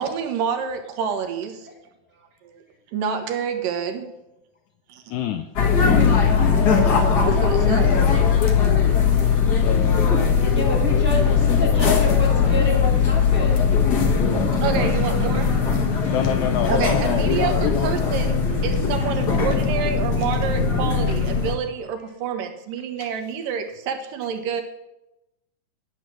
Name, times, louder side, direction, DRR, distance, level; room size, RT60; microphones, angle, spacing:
voice 1, 0.0-1.7 2.4-2.6 2.9-4.1 4.9-5.0 7.2-8.0 11.8-11.9 14.6-15.6 16.7-24.6, right 7 dB, 75° right, 6 dB, 2.7 m, -28 dB
voice 2, 5.1-5.5 8.5-8.6 9.6-11.8 16.0-17.9 21.1-21.2 23.0-23.1, left 10 dB, 90° left, 8 dB, 1.7 m, -27 dB
sound 1, 5.6-21.5, left 6 dB, 65° left, 1.0 m, -19 dB
voice 3, 10.4-13.6, equal, 15° right, -1 dB, 0.4 m, -28 dB
9.8 x 9.3 x 6.2 m, 0.93 s
omnidirectional pair, 4.0 m